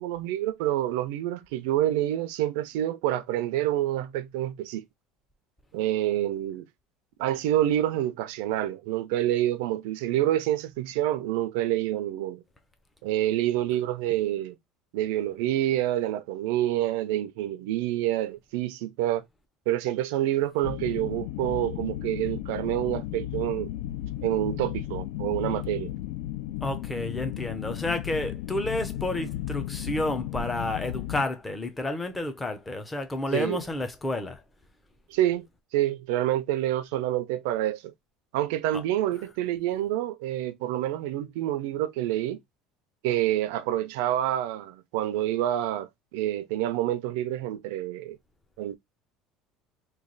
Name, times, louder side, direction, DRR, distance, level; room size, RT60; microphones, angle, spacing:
voice 1, 0.0-4.8 5.7-6.7 7.2-12.4 13.0-14.5 14.9-19.2 19.7-23.7 24.2-25.9 33.3-33.6 35.1-35.5 35.7-37.8 38.3-42.4 43.0-48.2 48.6-48.8, right 13 dB, 85° right, 0.5 m, -27 dB
sound 1, 20.6-31.2, left 14 dB, 75° left, 0.4 m, -34 dB
voice 2, 26.6-34.4 38.7-38.8, left 2 dB, 10° left, 0.5 m, -30 dB
3.1 x 2.3 x 3.9 m
cardioid pair, 170°, 0 cm